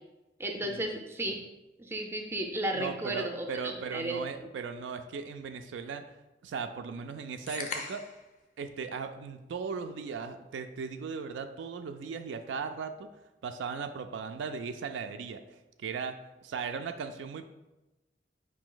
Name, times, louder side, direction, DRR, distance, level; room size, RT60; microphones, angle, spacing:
voice 1, 0.4-1.4 1.8-4.2, right 1 dB, 15° right, 3 dB, 0.4 m, -34 dB
voice 2, 2.7-6.1 6.4-8.0 8.6-13.1 13.4-17.4, right 5 dB, 75° right, 7 dB, 0.3 m, -38 dB
sound 1, 7.5-8.3, left 4 dB, 45° left, 0.5 m, -38 dB
5.0 x 2.6 x 3.8 m, 1.0 s
head